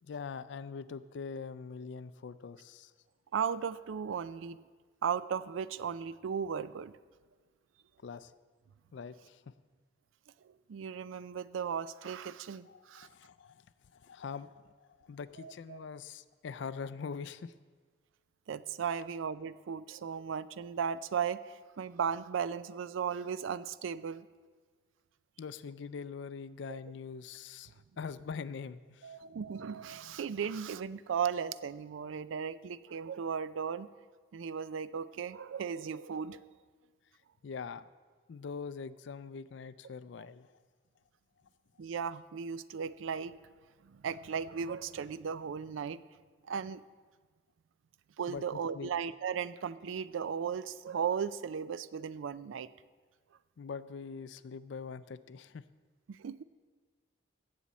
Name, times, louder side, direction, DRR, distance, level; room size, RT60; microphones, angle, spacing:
voice 1, 0.0-2.9 8.0-8.3 8.9-9.5 12.7-13.7 13.9-17.5 25.4-29.2 37.4-37.9 38.3-40.5 48.3-48.5 48.7-48.9 53.6-55.6, left 5 dB, 70° left, 15 dB, 0.4 m, -43 dB
voice 2, 3.3-4.6 5.0-6.9 10.7-13.1 15.4-15.8 18.5-24.3 26.7-26.8 29.0-33.9 34.3-36.5 41.8-43.4 43.8-46.0 46.5-46.8 48.2-52.7 56.1-56.4, right 7 dB, 85° right, 16 dB, 0.4 m, -36 dB
16.5 x 7.2 x 4.2 m, 1.5 s
head